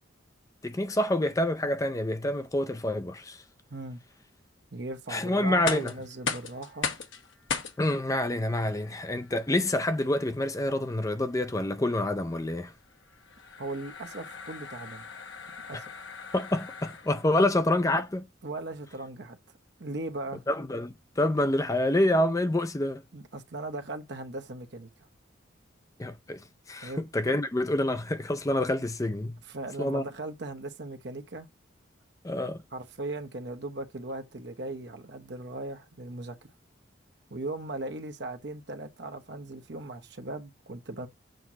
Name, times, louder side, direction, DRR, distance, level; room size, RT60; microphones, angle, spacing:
voice 1, 0.6-3.4 5.1-5.9 7.8-12.7 15.7-15.8 16.3-18.3 20.5-23.0 26.0-29.4 29.8-30.0 32.2-32.6, left 1 dB, 15° left, 0.4 m, -27 dB
voice 2, 3.7-4.0 4.7-6.9 13.6-15.1 15.7-15.9 18.4-19.4 19.8-20.4 23.1-24.9 26.8-27.0 29.5-31.5 32.7-36.5 37.3-41.1, right 2 dB, 55° right, 0.9 m, -38 dB
sound 1, 5.5-17.4, left 5 dB, 70° left, 1.2 m, -39 dB
7.8 x 2.9 x 6.1 m
head